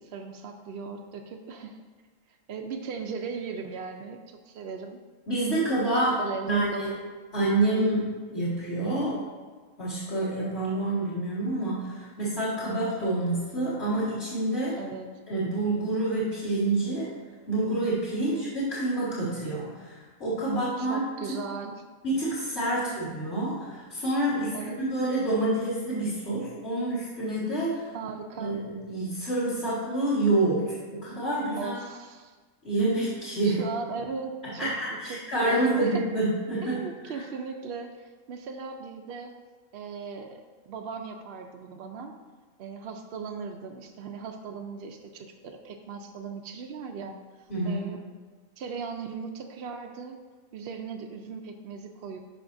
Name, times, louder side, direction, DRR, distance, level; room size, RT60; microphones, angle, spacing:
voice 1, 0.0-1.8 2.3-5.0 6.2-7.0 14.8-15.1 18.3-18.5 20.8-21.8 22.9-23.0 24.5-24.8 27.9-28.5 31.6-32.4 33.4-36.0 36.6-39.3 39.7-40.4 40.7-42.1 42.6-48.0 48.6-50.2 50.5-52.2, right 5 dB, 65° right, 3 dB, 0.6 m, -38 dB
voice 2, 5.3-6.2 6.5-6.9 7.3-9.2 9.8-14.8 15.3-17.1 17.5-21.0 22.0-27.9 28.3-31.7 32.6-33.6 34.4-37.1 47.5-47.9, right 2 dB, 50° left, -10 dB, 2.3 m, -28 dB
12.5 x 5.2 x 2.6 m, 1.4 s
omnidirectional pair, 1.4 m